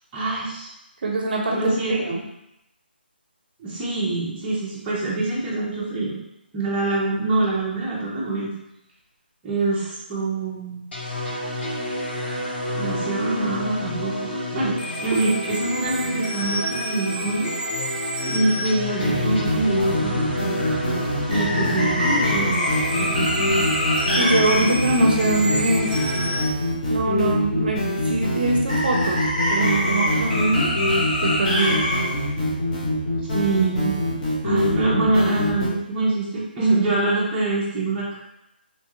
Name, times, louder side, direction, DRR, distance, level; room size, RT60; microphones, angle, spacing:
voice 1, 0.1-0.7 1.5-1.9 3.6-6.2 6.5-8.5 9.4-10.9 12.7-17.5 18.3-20.3 21.3-22.5 23.0-23.3 30.1-30.7 33.3-33.9 34.4-38.2, right 2 dB, 15° right, -8 dB, 0.6 m, -24 dB
voice 2, 1.0-2.2 14.6-14.7 15.1-15.2 24.1-26.0 26.9-30.3 31.2-31.8, right 2 dB, 55° right, 0 dB, 0.5 m, -23 dB
sound 1, 10.9-26.4, left 1 dB, 85° left, 1.4 m, -29 dB
sound 2, 19.0-35.7, left 1 dB, 45° left, 1.0 m, -23 dB
3.0 x 2.2 x 2.9 m, 0.85 s
hypercardioid pair, 160°, 6 cm